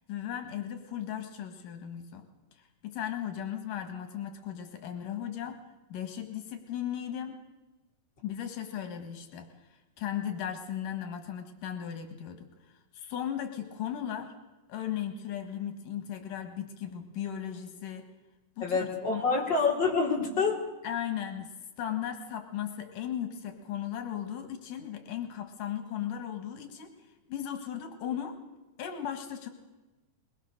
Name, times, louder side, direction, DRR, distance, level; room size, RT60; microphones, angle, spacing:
voice 1, 0.1-2.3 2.6-5.6 5.9-7.4 8.2-14.3 14.7-18.0 18.6-19.5 20.8-21.5 21.8-26.9 27.3-28.4 28.8-29.5, left 10 dB, 90° left, 7 dB, 3.3 m, -36 dB
voice 2, 18.6-20.6, left 4 dB, 35° left, -1 dB, 4.6 m, -27 dB
22.5 x 21.5 x 6.7 m, 1.1 s
omnidirectional pair, 3.6 m